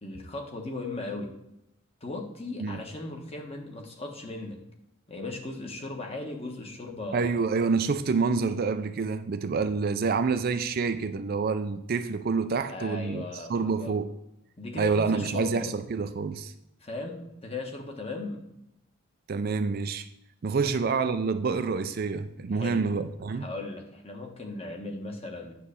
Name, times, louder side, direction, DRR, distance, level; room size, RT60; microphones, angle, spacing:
voice 1, 0.0-1.3 2.0-4.6 5.1-7.3 12.7-13.5 13.8-13.9 14.6-15.7 16.8-18.4 22.5-22.9 23.3-25.5, left 3 dB, 30° left, 2 dB, 1.2 m, -37 dB
voice 2, 7.1-13.2 13.5-14.1 14.8-16.5 19.3-20.1 20.4-23.5, right 4 dB, 45° right, 10 dB, 0.4 m, -27 dB
9.3 x 3.3 x 6.7 m, 0.85 s
head